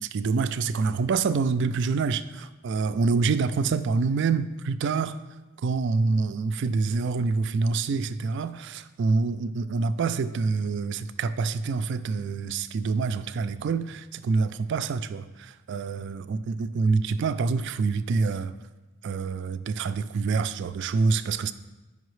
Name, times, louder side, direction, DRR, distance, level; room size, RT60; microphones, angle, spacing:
voice 1, 0.1-5.2 5.6-18.5 19.0-21.5, right 4 dB, 55° right, 0.3 m, -26 dB
10.0 x 5.6 x 3.1 m
head